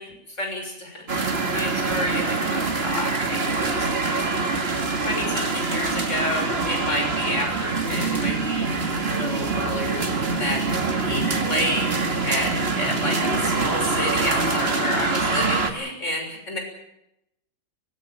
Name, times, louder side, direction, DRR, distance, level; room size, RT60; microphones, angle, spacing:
voice 1, 0.0-3.9 4.2-4.3 4.6-11.9 12.2-16.6, left 1 dB, 45° left, 3 dB, 6.9 m, -30 dB
sound 1, 1.1-15.7, right 3 dB, 35° right, 2.1 m, -25 dB
23.5 x 20.5 x 7.3 m, 0.82 s
omnidirectional pair, 1.8 m